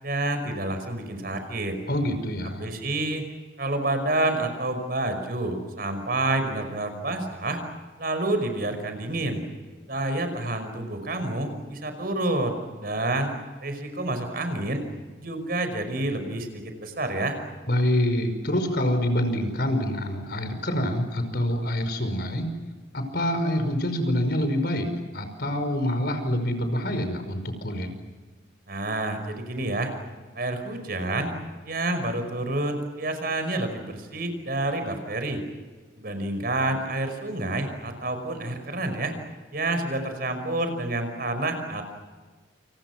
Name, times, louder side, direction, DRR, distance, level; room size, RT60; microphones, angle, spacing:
voice 1, 0.0-1.8 2.6-3.3 3.6-7.6 8.0-9.4 9.9-13.3 13.6-14.8 15.2-17.4 28.7-29.9 30.3-31.3 31.6-35.4 36.0-39.1 39.5-41.8, right 2 dB, 50° right, 7 dB, 5.6 m, -28 dB
voice 2, 1.9-2.7 17.7-22.5 22.9-24.9 25.1-27.9, left 1 dB, 55° left, 8 dB, 5.3 m, -26 dB
29.5 x 29.0 x 6.1 m, 1.4 s
head